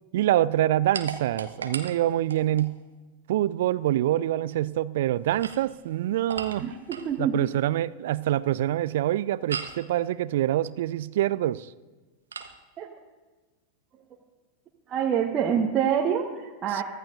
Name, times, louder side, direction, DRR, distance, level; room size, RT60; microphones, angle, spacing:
voice 1, 0.1-2.8 3.3-6.7 7.2-11.7 16.7-16.8, right 13 dB, 55° right, 19 dB, 0.4 m, -25 dB
sound 1, 0.9-2.7 5.2-7.2 9.5-9.9 12.3-12.6, right 5 dB, 70° right, 1.1 m, -37 dB
voice 2, 6.6-7.4 12.8-12.9 14.9-16.8, right 8 dB, 30° right, -1 dB, 1.4 m, -26 dB
23.5 x 15.5 x 2.7 m, 1.3 s
figure-of-eight pair, 90°, 0 cm